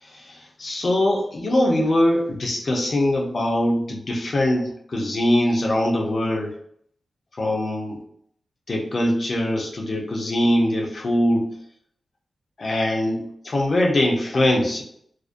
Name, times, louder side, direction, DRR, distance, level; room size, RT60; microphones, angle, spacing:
voice 1, 0.1-6.5 7.4-8.0 8.7-11.5 12.6-14.8, left 1 dB, 40° left, 0 dB, 0.4 m, -22 dB
2.4 x 2.1 x 2.5 m, 0.68 s
wide cardioid pair, 170°, 0 cm